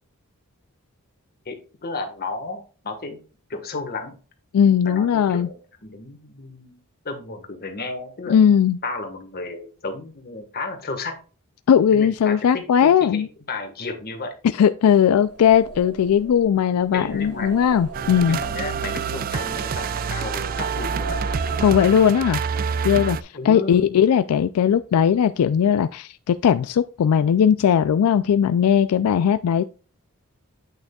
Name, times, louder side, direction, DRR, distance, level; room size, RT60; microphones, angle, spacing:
voice 1, 1.4-3.2 3.5-4.2 4.8-5.5 5.8-6.8 7.0-8.4 8.8-11.1 11.9-14.3 16.9-17.6 18.3-21.2 23.3-23.9, left 3 dB, 45° left, 1.5 m, -33 dB
voice 2, 4.5-5.5 8.3-8.8 11.7-13.3 14.6-18.4 21.6-22.4 22.8-29.6, left 8 dB, 80° left, 0.3 m, -18 dB
sound 1, 15.1-22.7, right 3 dB, 75° right, 2.2 m, -39 dB
sound 2, 17.9-23.2, right 6 dB, 40° right, 0.3 m, -27 dB
8.7 x 6.1 x 2.3 m
head